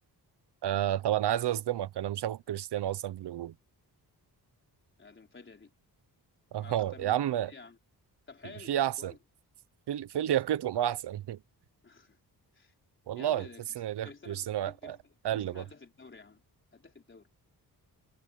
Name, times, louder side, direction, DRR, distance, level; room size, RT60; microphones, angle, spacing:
voice 1, 0.6-3.5 6.5-7.5 8.7-9.1 9.9-11.4 13.1-13.5 13.8-15.0 15.2-15.6, right 11 dB, 85° right, 0.8 m, -30 dB
voice 2, 5.0-5.7 6.6-7.2 7.4-7.8 8.3-9.2 10.1-10.4 11.8-12.2 12.5-12.7 13.2-13.6 14.0-15.0 15.3-16.4 16.7-17.3, left 4 dB, 30° left, 4.3 m, -51 dB
wide cardioid pair, 170°, 39 cm